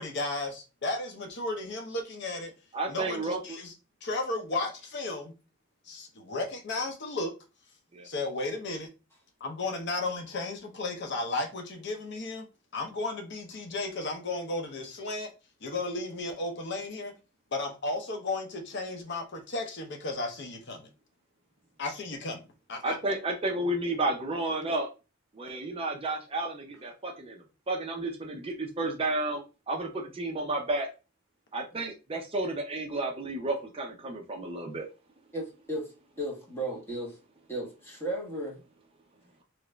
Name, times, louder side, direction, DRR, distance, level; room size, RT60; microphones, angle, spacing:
voice 1, 0.0-2.5 2.9-3.7 4.0-5.3 5.9-7.3 8.0-8.9 9.4-12.5 12.7-15.3 15.6-17.1 17.5-20.9 21.8-22.4 22.7-23.0, left 2 dB, 60° left, 4 dB, 0.7 m, -34 dB
voice 2, 2.7-3.6 7.9-8.1 22.8-24.9 25.3-29.4 29.7-30.9 31.5-34.9, right 2 dB, 30° right, 1 dB, 0.5 m, -32 dB
voice 3, 35.3-35.9 36.2-37.2 37.5-38.6, right 1 dB, 10° left, -3 dB, 1.2 m, -35 dB
2.9 x 2.5 x 3.2 m, 0.30 s
head